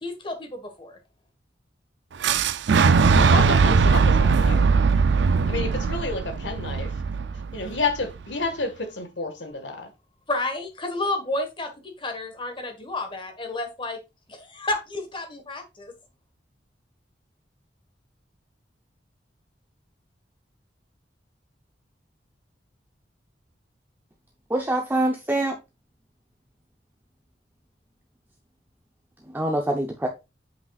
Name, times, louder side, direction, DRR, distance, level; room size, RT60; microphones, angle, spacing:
voice 1, 0.0-1.0 10.3-14.0 14.3-15.9, left 2 dB, 30° left, 1.5 m, -31 dB
Boom, 2.2-8.1, right 5 dB, 75° right, 0.4 m, -20 dB
voice 2, 3.2-4.7 5.4-7.0 7.5-9.9, left 3 dB, 80° left, 1.7 m, -30 dB
voice 3, 24.5-25.5 29.3-30.1, right 1 dB, 10° right, 0.7 m, -24 dB
8.2 x 5.5 x 2.4 m
head